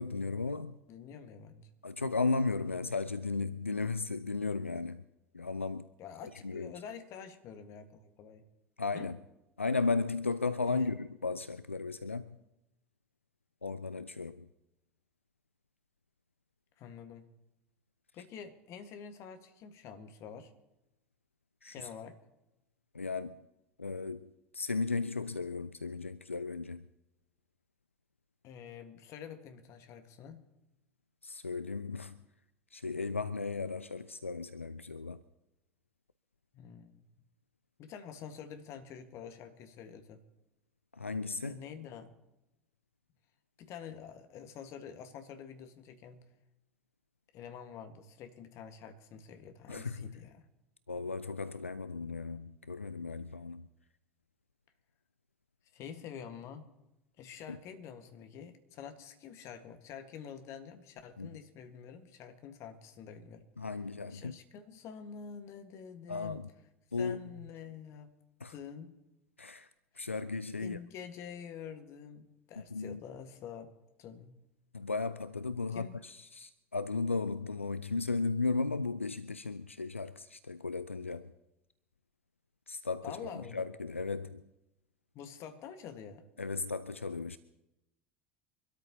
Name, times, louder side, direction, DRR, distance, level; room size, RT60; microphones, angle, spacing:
voice 1, 0.0-0.8 1.8-5.0 5.3-5.9 6.4-6.7 8.8-9.2 9.6-12.4 13.6-14.5 21.6-21.9 22.9-23.4 23.8-26.9 31.2-32.2 32.7-35.2 40.9-41.6 49.7-50.1 50.9-53.7 57.5-57.6 61.2-61.3 63.6-64.3 66.1-66.5 66.9-67.3 68.4-68.5 69.4-69.7 69.9-70.8 72.6-73.0 74.7-81.3 82.7-84.4 86.4-87.4, left 4 dB, 85° left, 0.4 m, -35 dB
voice 2, 0.9-1.7 6.0-8.5 8.9-9.1 10.6-10.9 16.8-17.3 18.1-20.5 21.7-22.2 28.4-30.5 36.5-37.0 37.8-40.2 41.4-42.1 43.6-46.3 47.3-50.4 55.7-56.7 57.2-63.5 64.1-66.4 67.0-68.1 68.5-69.0 70.6-73.7 74.0-74.4 75.7-76.0 83.0-83.6 85.1-86.2, left 7 dB, 45° left, 1.6 m, -47 dB
25.5 x 13.0 x 2.9 m
figure-of-eight pair, 70°, 7 cm